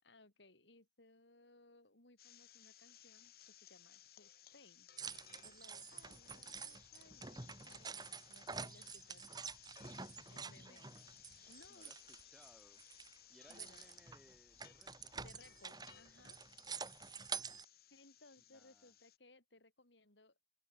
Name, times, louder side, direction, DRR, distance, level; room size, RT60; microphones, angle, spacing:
voice 1, 0.0-4.9 5.4-9.4 10.3-10.9 11.4-11.9 13.5-13.8 15.1-16.4 16.9-17.1 17.9-20.4, left 2 dB, 85° left, 5.1 m, -65 dB
sound 1, 2.2-19.2, left 11 dB, 55° left, 3.7 m, -62 dB
sound 2, 5.0-12.5 12.8-17.6, right 5 dB, 25° right, 2.3 m, -48 dB
voice 2, 10.5-11.1 11.7-12.8 13.3-15.2 18.5-18.9, equal, 5° right, 5.3 m, -66 dB
open air
head